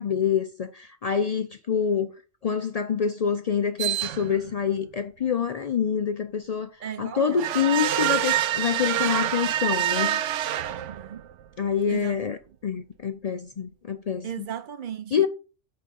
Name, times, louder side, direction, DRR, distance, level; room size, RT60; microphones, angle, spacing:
voice 1, 0.0-2.1 2.4-6.7 7.0-10.2 11.6-12.4 12.6-14.5 15.1-15.3, left 7 dB, 75° left, 0.3 m, -26 dB
sound 1, 3.8-4.5 7.4-11.3, right 12 dB, 75° right, 0.9 m, -26 dB
voice 2, 6.8-7.5 10.9-11.2 11.9-12.4 14.2-15.3, right 8 dB, 60° right, 0.6 m, -36 dB
8.7 x 3.8 x 5.3 m
omnidirectional pair, 1.3 m